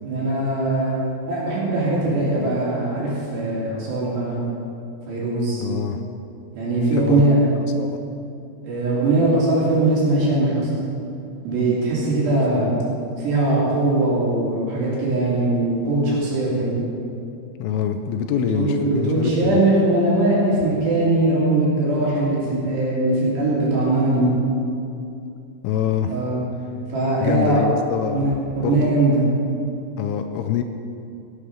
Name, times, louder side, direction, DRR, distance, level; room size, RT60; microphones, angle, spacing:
voice 1, 0.0-4.4 5.1-5.6 6.5-7.4 8.6-10.7 11.4-12.7 13.2-16.8 18.3-24.3 26.1-26.4 26.9-27.6 28.0-28.3 28.6-29.2, right 2 dB, 60° right, -6 dB, 5.0 m, -21 dB
voice 2, 5.6-6.0 6.9-7.3 7.8-8.0 12.5-12.8 17.6-19.6 25.6-26.1 27.2-28.3 28.6-28.9 30.0-30.6, left 9 dB, 85° left, 6 dB, 3.0 m, -25 dB
17.0 x 7.8 x 6.5 m, 2.6 s
omnidirectional pair, 6.0 m